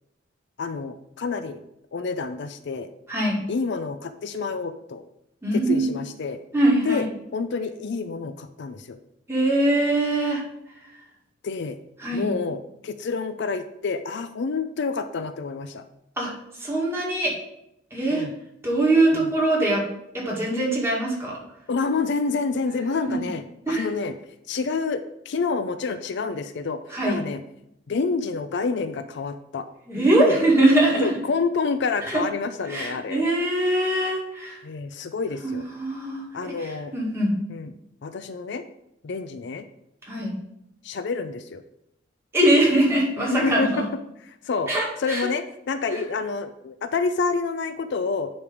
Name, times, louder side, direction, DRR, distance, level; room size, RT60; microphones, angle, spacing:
voice 1, 0.6-1.6 1.9-2.9 3.5-5.0 5.5-6.4 6.8-7.1 7.3-9.0 11.4-11.8 12.1-15.8 18.1-18.3 19.1-19.3 21.7-23.4 23.7-24.1 24.5-26.8 27.1-27.4 27.9-29.6 30.0-30.3 30.9-33.3 34.6-35.6 36.3-36.9 37.5-37.7 38.0-38.6 39.0-39.7 40.8-41.6 43.2-43.8 44.4-44.7 45.0-48.3, left 4 dB, 65° left, 10 dB, 0.4 m, -28 dB
voice 2, 5.4-5.9 6.5-7.1 9.3-10.4 12.0-12.3 16.2-16.3 16.6-17.3 17.9-18.3 18.6-19.8 20.1-21.4 23.7-23.9 26.9-27.2 29.9-31.1 32.1-32.2 32.7-34.6 35.4-37.3 40.1-40.3 42.3-43.8 44.7-45.3, right 1 dB, 15° right, -4 dB, 2.0 m, -22 dB
9.7 x 3.3 x 5.1 m, 0.80 s
head